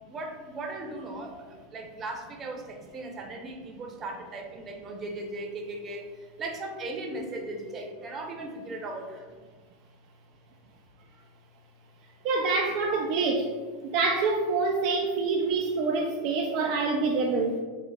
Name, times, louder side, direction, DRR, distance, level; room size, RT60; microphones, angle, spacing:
voice 1, 0.1-6.1 6.4-9.3, right 2 dB, 30° right, 2 dB, 0.8 m, -37 dB
voice 2, 12.2-13.5 13.9-17.6, right 3 dB, 50° right, 0 dB, 0.4 m, -26 dB
4.2 x 2.0 x 4.2 m, 1.5 s
figure-of-eight pair, 90°, 0 cm